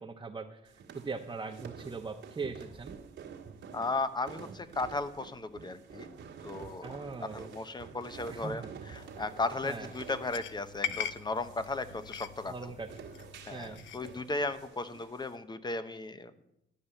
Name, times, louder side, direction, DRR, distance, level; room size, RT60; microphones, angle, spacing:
voice 1, 0.0-3.0 6.8-7.5 8.3-8.7 9.6-9.9 12.5-13.0 13.5-13.8, right 4 dB, 20° right, 0 dB, 1.0 m, -40 dB
sound 1, 0.6-15.3, right 6 dB, 70° right, 1.7 m, -49 dB
voice 2, 3.7-6.2 6.4-6.9 7.2-12.7 13.5-16.4, left 3 dB, 20° left, 12 dB, 0.9 m, -36 dB
sound 2, 8.9-14.2, left 9 dB, 75° left, 0.7 m, -42 dB
12.0 x 5.5 x 9.0 m, 0.83 s
cardioid pair, 90°, 20 cm